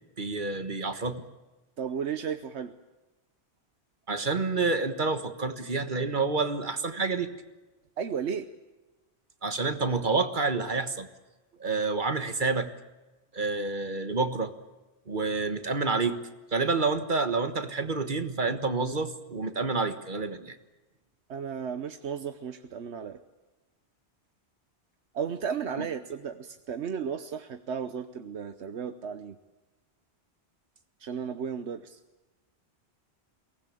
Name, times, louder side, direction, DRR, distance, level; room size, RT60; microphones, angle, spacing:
voice 1, 0.2-1.2 4.1-7.3 9.4-11.1 11.6-12.7 13.3-14.5 15.1-16.2 16.5-20.5, right 3 dB, 45° right, 9 dB, 1.6 m, -28 dB
voice 2, 1.8-2.7 8.0-8.5 21.3-23.2 25.1-29.4 31.0-32.0, right 7 dB, 85° right, 9 dB, 1.2 m, -34 dB
23.0 x 19.0 x 8.5 m, 1.1 s
omnidirectional pair, 1.1 m